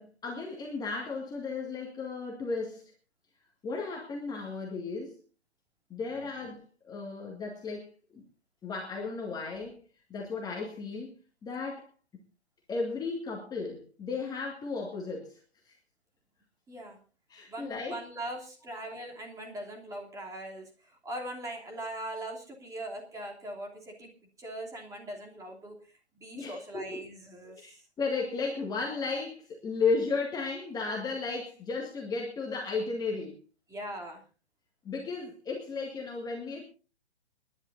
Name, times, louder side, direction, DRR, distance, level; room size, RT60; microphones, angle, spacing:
voice 1, 0.0-2.8 3.6-5.2 5.9-8.2 8.6-9.8 10.1-11.9 12.7-15.8 17.3-18.0 26.4-27.0 27.4-27.7 28.0-33.4 34.8-36.6, left 4 dB, 10° left, -1 dB, 1.9 m, -34 dB
voice 2, 16.7-17.0 17.5-20.7 21.0-24.1 24.4-25.8 26.2-27.8 33.7-34.2, right 1 dB, 10° right, 1 dB, 2.9 m, -40 dB
29.0 x 10.5 x 2.6 m, 0.35 s
figure-of-eight pair, 130°, 32 cm